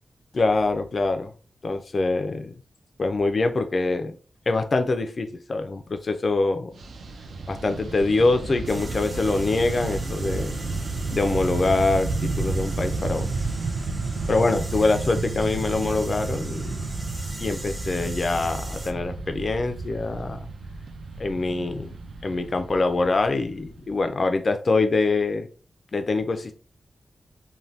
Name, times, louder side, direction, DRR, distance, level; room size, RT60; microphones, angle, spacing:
voice 1, 0.3-1.3 1.6-2.5 3.0-4.2 4.5-6.8 7.5-10.6 11.1-13.3 14.3-16.8 17.4-20.4 21.2-22.0 22.2-25.5 25.9-26.6, left 3 dB, 40° left, 7 dB, 0.3 m, -24 dB
Fixed-wing aircraft airplane, 6.7-24.2, right 3 dB, 75° right, 0.4 m, -31 dB
sound 1, 8.7-18.9, right 1 dB, 25° right, 0.5 m, -41 dB
2.7 x 2.1 x 3.1 m, 0.38 s
wide cardioid pair, 140°, 0 cm